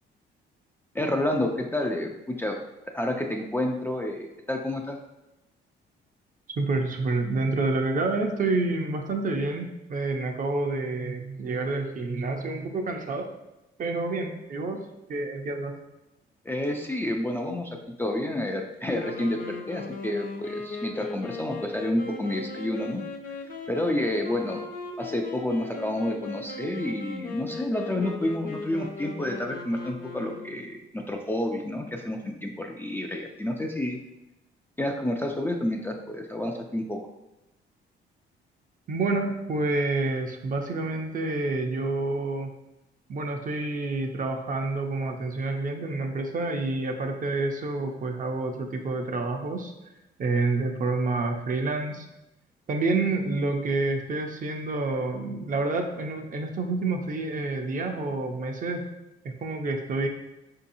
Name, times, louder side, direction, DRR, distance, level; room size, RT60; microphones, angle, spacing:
voice 1, 0.9-2.6 2.9-5.0 16.5-23.0 23.7-24.6 25.0-34.0 34.8-37.0, left 1 dB, 10° left, 1 dB, 0.3 m, -29 dB
voice 2, 6.6-13.3 13.8-14.8 15.1-15.7 38.9-42.5 43.1-49.7 50.2-52.1 52.7-58.8 59.2-60.1, right 3 dB, 45° right, 4 dB, 0.5 m, -28 dB
sound 1, 18.9-30.7, left 3 dB, 45° left, 0.6 m, -38 dB
4.6 x 2.8 x 2.6 m, 0.96 s
cardioid pair, 90°, 20 cm